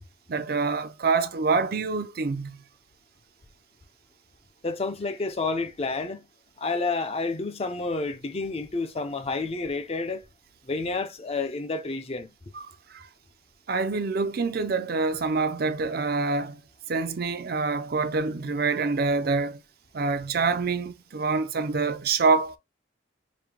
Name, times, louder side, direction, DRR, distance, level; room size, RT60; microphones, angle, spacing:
voice 1, 0.3-2.6 12.5-13.1 13.7-16.6 16.9-19.6 19.9-22.6, right 4 dB, 50° right, 0.5 m, -26 dB
voice 2, 4.6-6.2 6.6-10.3 10.7-12.3, left 3 dB, 30° left, 0.5 m, -30 dB
5.1 x 2.2 x 2.9 m
head